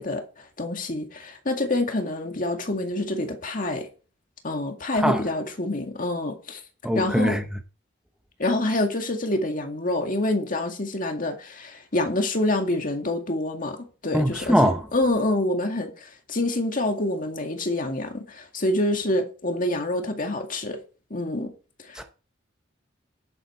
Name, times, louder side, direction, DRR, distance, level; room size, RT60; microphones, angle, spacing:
voice 1, 0.0-3.9 4.4-6.6 6.9-7.4 8.4-14.6 14.9-20.8 21.1-21.5 21.9-22.0, left 1 dB, 45° left, 2.0 m, -27 dB
voice 2, 6.8-7.4 14.1-14.9 21.9-22.0, equal, 5° right, 0.8 m, -22 dB
10.5 x 8.7 x 4.4 m
head